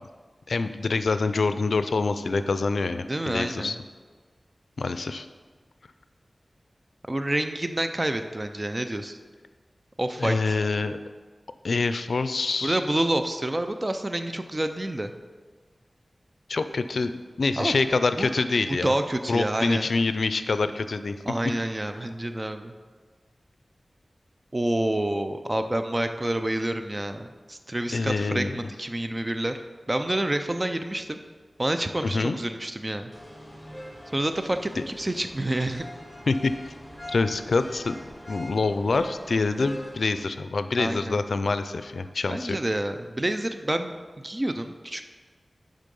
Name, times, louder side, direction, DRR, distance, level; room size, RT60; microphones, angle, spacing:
voice 1, 0.5-3.8 4.8-5.3 10.2-11.0 11.6-12.8 16.5-17.1 17.4-18.9 19.3-21.2 27.9-28.6 32.0-32.4 36.3-36.7 37.1-38.0 38.3-42.6, left 3 dB, 80° left, 11 dB, 0.4 m, -26 dB
voice 2, 3.1-3.8 7.1-9.2 10.0-10.5 12.6-15.1 17.6-17.8 18.2-18.3 18.7-19.9 21.2-22.7 24.5-29.6 29.9-31.2 31.6-33.1 34.1-35.8 40.8-41.2 42.3-43.9 44.2-45.1, right 1 dB, 25° right, 8 dB, 0.5 m, -28 dB
sound 1, 33.1-40.2, equal, ahead, 2.3 m, -42 dB
10.0 x 3.8 x 5.3 m, 1.5 s
wide cardioid pair, 75°, 0 cm